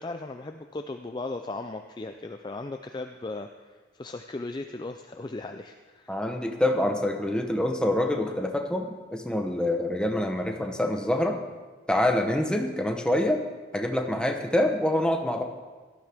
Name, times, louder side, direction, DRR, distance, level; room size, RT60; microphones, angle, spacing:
voice 1, 0.0-6.2, left 2 dB, 20° left, 6 dB, 0.4 m, -37 dB
voice 2, 6.1-11.4 11.9-13.4 13.7-15.4, left 1 dB, 5° left, 3 dB, 0.9 m, -26 dB
17.5 x 12.5 x 3.5 m, 1.4 s
head